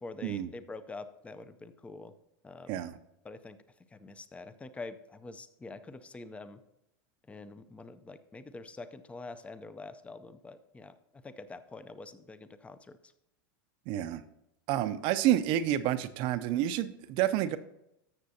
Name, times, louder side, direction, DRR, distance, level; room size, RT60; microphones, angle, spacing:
voice 1, 0.0-2.1 2.4-2.8 3.2-3.6 3.9-6.6 7.3-13.0, left 3 dB, 10° left, 13 dB, 0.5 m, -46 dB
voice 2, 13.9-14.2 14.7-17.6, right 12 dB, 50° right, 12 dB, 0.5 m, -29 dB
13.0 x 6.8 x 2.8 m, 0.85 s
hypercardioid pair, 120°, 11 cm